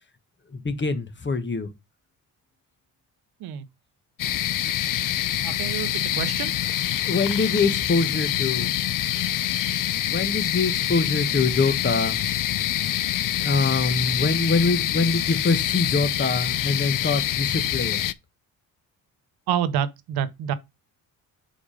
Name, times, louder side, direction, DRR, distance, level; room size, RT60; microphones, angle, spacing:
voice 1, 0.5-1.7 7.0-8.7 10.1-12.2 13.4-18.0, left 3 dB, 30° left, 1.3 m, -24 dB
sound 1, 4.2-18.1, left 12 dB, 55° left, 0.6 m, -26 dB
voice 2, 5.4-6.5 19.5-20.5, right 9 dB, 75° right, 0.8 m, -28 dB
5.1 x 5.0 x 5.0 m
supercardioid pair, 65°, 38 cm